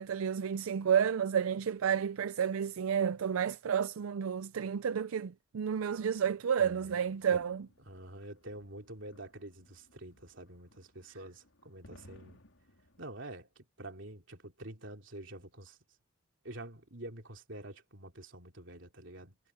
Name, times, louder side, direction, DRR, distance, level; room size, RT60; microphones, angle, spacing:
voice 1, 0.0-7.7, right 7 dB, 90° right, 0.4 m, -31 dB
sound 1, 5.9-13.1, left 1 dB, 75° left, 3.9 m, -62 dB
voice 2, 6.6-7.0 7.3-7.4 7.9-12.4 13.0-15.8 16.4-19.4, right 1 dB, 60° right, 3.4 m, -47 dB
head